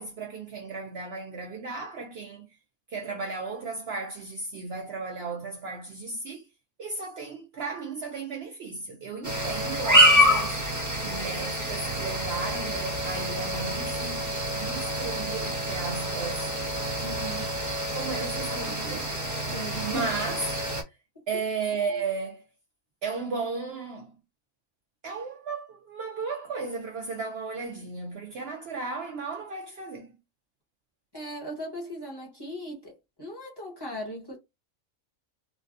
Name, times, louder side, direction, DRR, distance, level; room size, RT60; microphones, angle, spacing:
voice 1, 0.0-2.5 2.9-6.5 6.8-10.6 11.0-16.5 17.9-19.2 19.8-20.6 20.9-21.0 21.3-22.5 23.0-24.2 25.0-30.2, right 4 dB, 60° right, 0.7 m, -35 dB
sound 1, 9.2-20.8, equal, 20° right, 0.6 m, -27 dB
voice 2, 17.0-17.5 19.5-20.1 31.1-34.4, right 1 dB, 20° left, 1.1 m, -38 dB
3.2 x 2.2 x 2.5 m
omnidirectional pair, 1.4 m